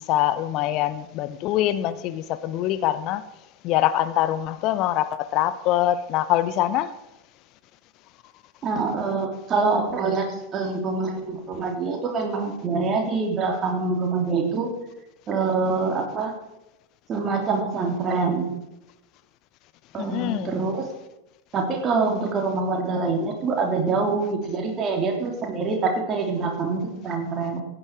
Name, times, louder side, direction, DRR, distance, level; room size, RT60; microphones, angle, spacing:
voice 1, 0.0-3.2 3.6-6.9 20.0-20.5, left 13 dB, 45° left, 0.7 m, -24 dB
voice 2, 8.6-14.7 15.3-16.3 17.1-18.5 19.9-20.9 21.5-27.6, right 4 dB, 30° right, 3.3 m, -25 dB
15.5 x 10.0 x 4.8 m
figure-of-eight pair, 85°, 0 cm